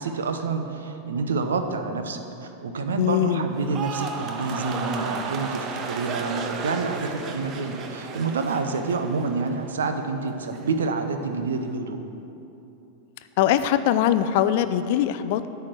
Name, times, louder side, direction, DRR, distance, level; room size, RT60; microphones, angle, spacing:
voice 1, 0.0-12.0, right 4 dB, 65° right, 7 dB, 0.7 m, -28 dB
voice 2, 3.0-3.5 13.4-15.5, left 11 dB, 50° left, 12 dB, 0.4 m, -22 dB
sound 1, 3.5-9.9 10.2-10.7, right 5 dB, 35° right, 0.8 m, -34 dB
8.5 x 5.7 x 7.7 m, 3.0 s
figure-of-eight pair, 90°, 0 cm